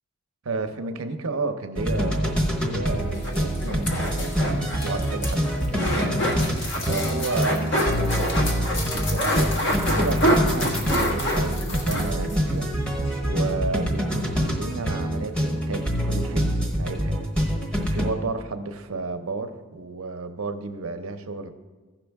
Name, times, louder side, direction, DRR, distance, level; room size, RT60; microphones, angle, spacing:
voice 1, 0.4-12.7 13.2-17.3 17.9-21.5, right 3 dB, 80° right, 8 dB, 0.7 m, -32 dB
sound 1, 1.8-18.1, equal, 5° left, 1.0 m, -25 dB
sound 2, 3.1-12.4 12.7-12.8 13.0-13.2, equal, 55° left, 1.5 m, -27 dB
15.5 x 5.9 x 3.5 m, 1.3 s
head